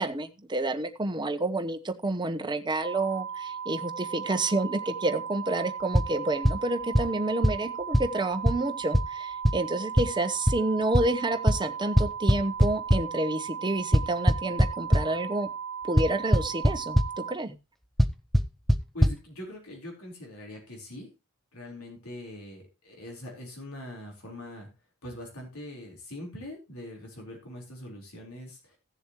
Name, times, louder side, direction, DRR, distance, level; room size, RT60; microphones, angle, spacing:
voice 1, 0.0-15.5 15.9-17.5, right 2 dB, 20° right, 8 dB, 1.0 m, -29 dB
sound 1, 2.8-17.3, right 7 dB, 55° right, 1.4 m, -37 dB
sound 2, 5.9-6.1 6.5-6.6 7.0-7.1 7.4-7.5 7.9-8.0 8.5-8.6 8.9-9.0 9.4-9.5 10.0-10.1 10.5-10.6 10.9-11.0 11.5-11.6 12.0-13.0 13.9-15.0 16.0-16.1 16.3-16.7 17.0-17.1 18.0-18.1 18.3-18.4 18.7-18.8 19.0-19.1, equal, ahead, 0.6 m, -19 dB
voice 2, 18.9-21.1 21.5-24.7 25.0-28.8, left 1 dB, 75° left, 1 dB, 4.2 m, -42 dB
16.5 x 7.1 x 3.1 m, 0.26 s
head